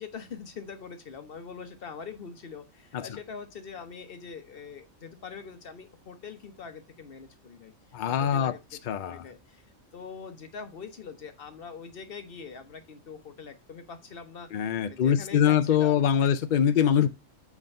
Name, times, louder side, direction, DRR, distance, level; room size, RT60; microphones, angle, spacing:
voice 1, 0.0-7.7 8.1-8.6 9.0-9.6 9.9-16.3, left 5 dB, 45° left, 1.1 m, -43 dB
voice 2, 7.9-8.5 8.9-9.2 14.5-17.1, left 9 dB, 75° left, 0.4 m, -23 dB
7.7 x 3.6 x 5.2 m
omnidirectional pair, 1.4 m